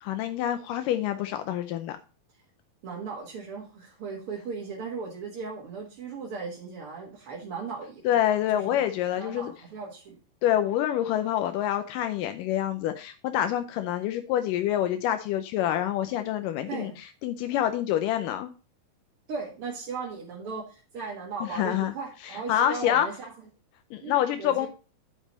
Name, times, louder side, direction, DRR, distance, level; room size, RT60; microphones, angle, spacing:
voice 1, 0.0-2.0 8.1-9.5 10.4-16.9 17.2-18.5 21.5-21.9 22.5-23.1 23.9-24.7, left 11 dB, 80° left, 8 dB, 1.9 m, -26 dB
voice 2, 2.8-8.0 8.5-8.8 9.2-10.2 16.7-17.0 19.3-23.3 24.0-24.7, right 4 dB, 50° right, -3 dB, 1.8 m, -37 dB
9.8 x 5.5 x 4.0 m, 0.34 s
omnidirectional pair, 4.6 m